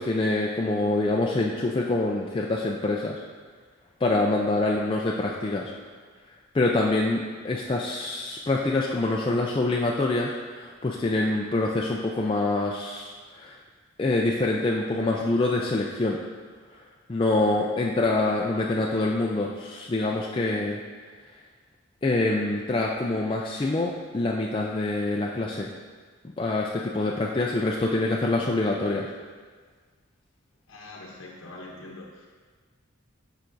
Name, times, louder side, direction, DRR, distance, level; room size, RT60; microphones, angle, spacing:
voice 1, 0.0-3.2 4.0-5.7 6.5-13.6 14.0-16.2 17.1-20.8 22.0-25.7 26.4-29.1, left 2 dB, 25° left, -2 dB, 0.3 m, -25 dB
voice 2, 30.7-32.3, left 2 dB, 75° left, -3 dB, 0.9 m, -43 dB
9.3 x 5.7 x 2.6 m, 1.5 s
head